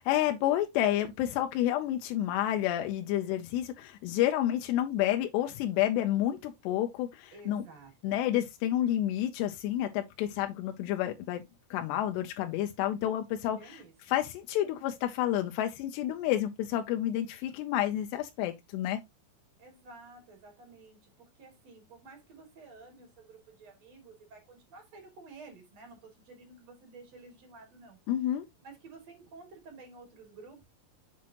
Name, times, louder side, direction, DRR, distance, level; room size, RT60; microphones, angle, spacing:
voice 1, 0.0-7.6 8.0-11.4 11.7-13.8 14.1-19.0 28.1-28.5, left 12 dB, 90° left, 2.9 m, -30 dB
voice 2, 7.3-8.2 13.6-13.9 19.6-28.0 28.6-30.6, right 3 dB, 45° right, 3.7 m, -52 dB
7.4 x 5.8 x 3.0 m
omnidirectional pair, 4.7 m